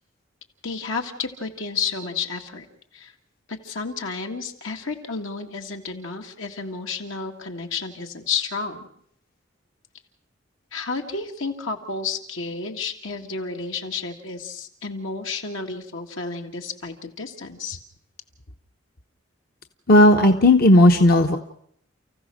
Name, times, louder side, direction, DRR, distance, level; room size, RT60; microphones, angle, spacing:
voice 1, 0.6-2.7 2.9-3.1 3.5-8.9 10.7-17.8, left 4 dB, 80° left, 3 dB, 2.0 m, -31 dB
voice 2, 19.9-21.4, left 1 dB, 50° left, 5 dB, 1.0 m, -14 dB
29.5 x 15.0 x 6.3 m, 0.69 s
head